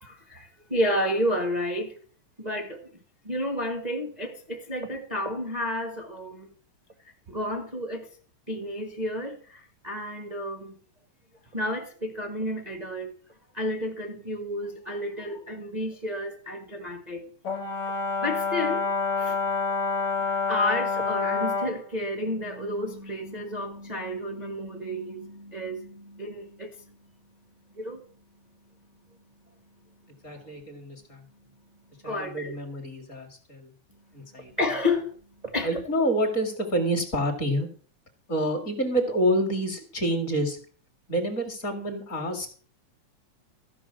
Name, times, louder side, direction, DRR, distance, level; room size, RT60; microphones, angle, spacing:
voice 1, 0.0-2.0 2.4-6.5 7.0-8.1 8.5-10.7 11.5-13.1 13.5-17.3 18.2-19.4 20.3-27.1 27.7-28.1 29.1-29.2 30.3-30.8 32.0-32.5 34.1-35.8, left 1 dB, 35° right, 0.6 m, -31 dB
Brass instrument, 17.4-21.8, left 4 dB, 50° left, 1.4 m, -27 dB
voice 2, 30.2-31.2 32.0-33.7 34.1-34.5 35.6-37.7 38.3-40.6 41.1-42.5, equal, 30° left, 2.1 m, -28 dB
14.0 x 6.2 x 7.3 m
omnidirectional pair, 3.7 m